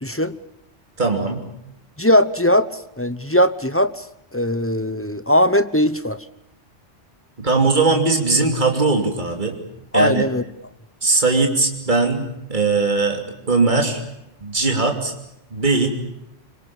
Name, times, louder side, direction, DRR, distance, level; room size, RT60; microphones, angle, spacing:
voice 1, 0.0-0.3 2.0-2.7 3.0-4.0 4.3-6.2 9.9-10.4, equal, 15° left, 13 dB, 0.8 m, -19 dB
voice 2, 1.0-1.4 7.4-9.6 9.9-10.2 11.0-13.2 13.5-14.0 14.4-15.1 15.5-15.9, right 3 dB, 40° right, 3 dB, 3.3 m, -19 dB
25.5 x 24.0 x 7.1 m, 0.82 s
omnidirectional pair, 1.2 m